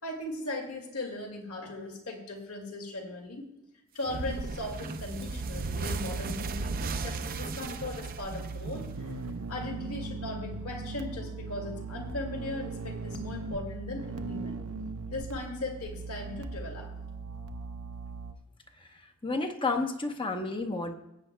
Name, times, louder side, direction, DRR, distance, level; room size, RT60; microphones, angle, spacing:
voice 1, 0.0-3.5 3.9-9.1 9.5-14.6 15.1-16.9, left 2 dB, 75° left, 1 dB, 2.1 m, -38 dB
sound 1, 4.1-9.2, right 3 dB, 40° right, 0.5 m, -35 dB
sound 2, 5.9-18.3, right 3 dB, 75° right, 0.7 m, -39 dB
voice 2, 18.8-20.9, left 3 dB, 25° left, 5 dB, 0.8 m, -31 dB
19.5 x 8.8 x 2.2 m, 0.91 s
head